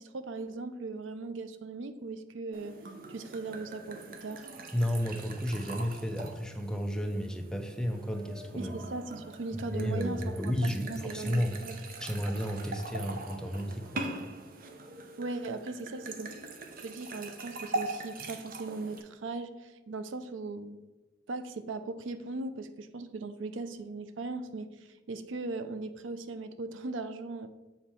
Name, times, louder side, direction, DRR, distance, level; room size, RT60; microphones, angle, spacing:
voice 1, 0.0-2.7 3.1-4.5 8.5-10.2 10.6-11.8 15.2-16.3 16.8-20.8 21.3-24.7 25.1-27.5, right 3 dB, 90° right, 11 dB, 0.5 m, -38 dB
sound 1, 2.5-19.0, right 2 dB, 50° right, 0.7 m, -42 dB
voice 2, 4.7-8.7 9.5-11.7 12.0-14.0, equal, 5° left, 4 dB, 0.6 m, -32 dB
7.2 x 4.5 x 4.3 m, 1.1 s
head